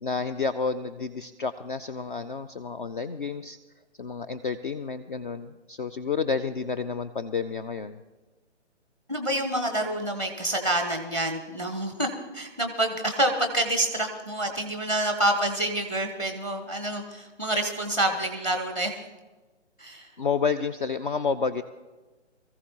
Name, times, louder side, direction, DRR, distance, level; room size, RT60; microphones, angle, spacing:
voice 1, 0.0-3.6 4.0-8.0 20.2-21.6, left 5 dB, 45° left, 11 dB, 0.5 m, -30 dB
voice 2, 9.1-18.9 19.8-20.1, right 1 dB, 5° left, 5 dB, 0.7 m, -27 dB
22.5 x 14.5 x 2.9 m, 1.2 s
figure-of-eight pair, 145°, 36 cm